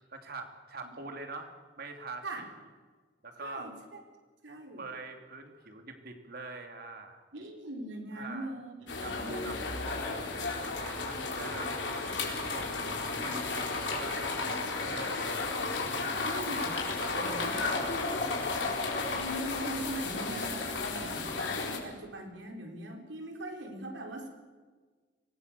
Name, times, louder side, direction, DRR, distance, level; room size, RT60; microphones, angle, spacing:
voice 1, 0.1-1.5 1.8-2.5 3.2-3.7 4.8-7.3 8.1-8.5 9.0-9.6 10.6-12.7 13.2-16.3 17.0-17.8 18.1-18.7, right 3 dB, 55° right, 4 dB, 2.9 m, -44 dB
voice 2, 3.4-4.0 4.4-4.8 7.3-9.6 10.2-10.3 16.2-16.8 17.1-17.6 19.1-24.3, right 1 dB, 85° right, 2 dB, 4.3 m, -41 dB
sound 1, 8.9-21.8, left 3 dB, 70° left, 4.4 m, -33 dB
Liquid, 15.6-15.7 15.9-19.2 19.5-19.6, left 3 dB, 45° left, 3.3 m, -40 dB
24.0 x 18.5 x 6.9 m, 1.4 s
head